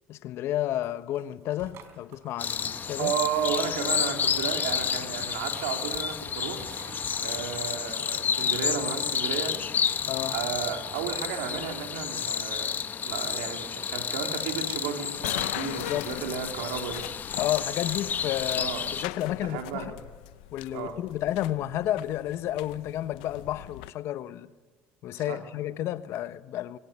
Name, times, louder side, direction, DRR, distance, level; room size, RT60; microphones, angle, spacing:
voice 1, 0.1-3.1 10.1-10.4 15.7-16.1 17.4-20.0 20.5-24.5 25.0-26.8, left 13 dB, 60° left, 1.1 m, -31 dB
sound 1, 0.7-8.0, right 7 dB, 60° right, 4.2 m, -50 dB
sound 2, 2.4-19.0, left 7 dB, 40° left, 1.2 m, -31 dB
voice 2, 3.0-6.7 7.2-9.6 10.3-12.7 13.0-17.0 18.6-18.8 19.4-19.9 20.7-21.0 25.3-25.4, right 7 dB, 85° right, 3.8 m, -33 dB
sound 3, 15.2-23.9, left 18 dB, 85° left, 0.7 m, -41 dB
22.5 x 18.5 x 9.8 m
supercardioid pair, 80°, 5 cm